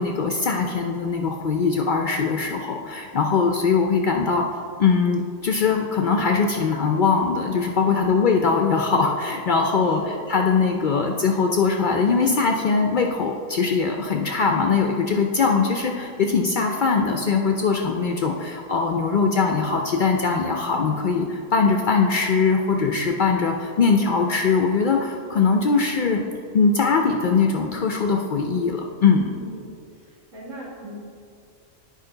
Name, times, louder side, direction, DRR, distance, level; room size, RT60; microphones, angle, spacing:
voice 1, 0.0-4.4 4.8-26.2 26.5-29.3, left 5 dB, 65° left, 3 dB, 0.5 m, -21 dB
voice 2, 7.8-8.2 9.7-10.2 29.4-29.7 30.3-31.1, equal, 85° right, -5 dB, 2.3 m, -38 dB
9.0 x 5.0 x 3.8 m, 2.2 s
omnidirectional pair, 1.3 m